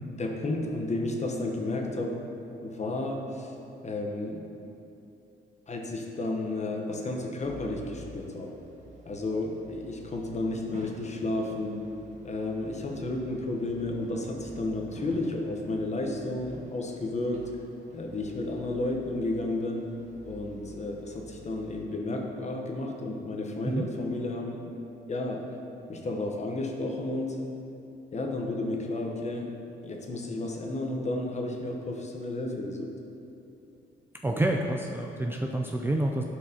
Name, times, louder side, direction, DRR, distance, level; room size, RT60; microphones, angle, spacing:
voice 1, 0.1-2.2 2.6-3.5 3.8-4.4 5.7-8.5 9.1-11.8 12.2-17.5 17.9-19.9 20.2-24.7 25.1-25.4 25.9-27.4 28.1-29.5 29.8-32.9, left 2 dB, 35° left, 1 dB, 1.0 m, -32 dB
sound 1, 7.4-21.9, equal, 35° right, 1.2 m, -50 dB
voice 2, 34.2-36.2, right 1 dB, 10° right, 1 dB, 0.4 m, -28 dB
12.0 x 4.7 x 2.9 m, 2.8 s
cardioid pair, 90°, 20 cm